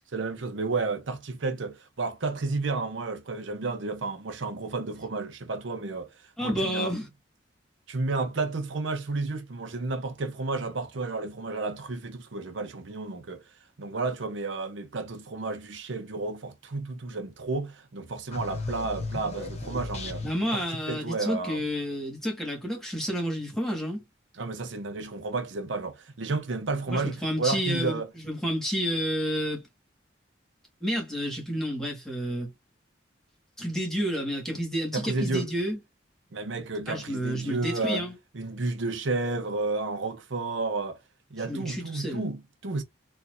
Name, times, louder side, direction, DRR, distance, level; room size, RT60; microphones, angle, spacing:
voice 1, 0.1-6.1 6.4-6.9 7.9-13.4 13.8-20.3 20.5-20.6 20.9-21.7 24.4-28.1 34.9-35.5 36.3-38.1 38.3-41.0 41.3-42.8, right 3 dB, 80° right, 0.7 m, -31 dB
voice 2, 6.4-7.1 20.2-24.0 26.9-29.6 30.8-32.5 33.6-35.8 36.9-38.1 41.5-42.2, equal, ahead, 1.5 m, -30 dB
sound 1, 18.3-20.6, left 2 dB, 35° left, 0.9 m, -35 dB
4.3 x 2.4 x 2.5 m
head